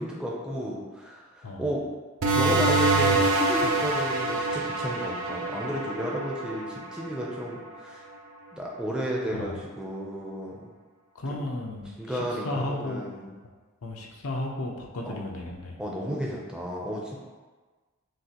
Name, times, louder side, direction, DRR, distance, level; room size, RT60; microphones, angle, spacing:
voice 1, 0.0-1.8 2.3-8.0 8.5-9.5 9.8-10.7 11.3-11.4 12.0-13.3 15.0-15.3 15.8-17.2, equal, 5° right, -4 dB, 0.5 m, -33 dB
sound 1, 2.2-7.4, right 2 dB, 75° right, 0.6 m, -25 dB
voice 2, 11.1-13.1 13.8-15.8, left 1 dB, 85° left, 0 dB, 0.7 m, -34 dB
6.2 x 2.4 x 2.8 m, 1.4 s
head